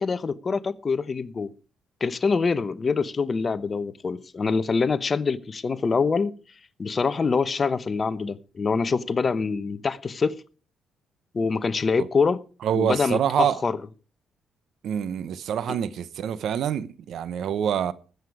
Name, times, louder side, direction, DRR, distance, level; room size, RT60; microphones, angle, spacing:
voice 1, 0.0-1.5 2.0-6.3 6.8-10.4 11.3-12.4 12.7-13.7 15.7-15.8, left 4 dB, 35° left, 1.0 m, -25 dB
voice 2, 12.6-13.6 14.8-17.9, right 9 dB, 70° right, 0.8 m, -26 dB
20.0 x 8.1 x 4.8 m
cardioid pair, 90°, 0 cm